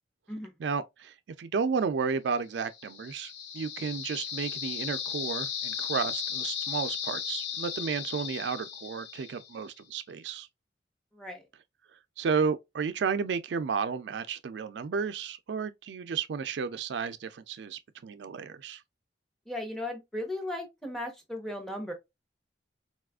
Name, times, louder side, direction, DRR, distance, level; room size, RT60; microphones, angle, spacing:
voice 1, 0.6-10.5 12.2-18.8, right 5 dB, 75° right, 0.4 m, -32 dB
sound 1, 2.7-9.6, left 8 dB, 85° left, 0.6 m, -36 dB
voice 2, 11.1-11.4 19.5-21.9, left 1 dB, ahead, 0.8 m, -36 dB
4.1 x 2.4 x 2.3 m
head